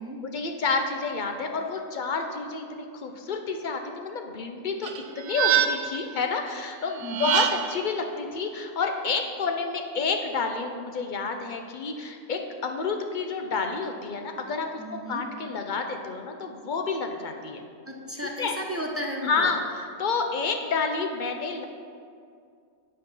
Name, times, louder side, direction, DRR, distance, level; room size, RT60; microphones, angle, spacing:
voice 1, 0.2-4.9 5.2-14.8 15.1-17.6 18.4-18.5 19.2-21.6, left 4 dB, 45° left, 4 dB, 0.7 m, -29 dB
sound 1, 4.8-6.1 7.0-7.9, right 9 dB, 65° right, 0.8 m, -25 dB
voice 2, 7.0-7.3 14.8-15.2 17.9-19.5, equal, 15° right, 0 dB, 0.6 m, -34 dB
9.4 x 5.2 x 5.5 m, 2.3 s
omnidirectional pair, 1.4 m